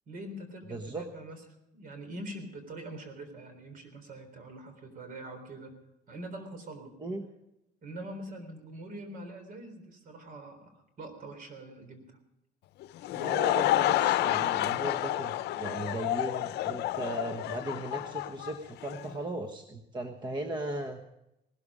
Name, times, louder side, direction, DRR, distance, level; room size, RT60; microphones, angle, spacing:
voice 1, 0.1-1.4 1.7-5.8 6.1-7.0 7.8-12.2, right 1 dB, 55° right, 8 dB, 3.8 m, -44 dB
voice 2, 0.7-1.0 7.0-7.3 13.1-21.0, right 1 dB, 25° right, 5 dB, 1.3 m, -37 dB
Laughter / Crowd, 12.8-19.1, left 14 dB, 75° left, 0.7 m, -29 dB
18.5 x 13.0 x 4.9 m, 0.86 s
cardioid pair, 110°, 17 cm